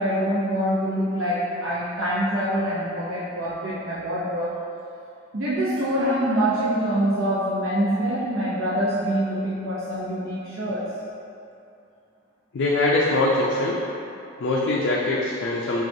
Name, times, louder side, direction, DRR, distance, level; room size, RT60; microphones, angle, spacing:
voice 1, 0.0-4.5 5.3-10.9, equal, 80° right, -9 dB, 0.6 m, -25 dB
voice 2, 12.5-13.8 14.4-15.8, left 2 dB, 60° left, -4 dB, 0.4 m, -22 dB
6.1 x 2.4 x 2.6 m, 2.7 s
head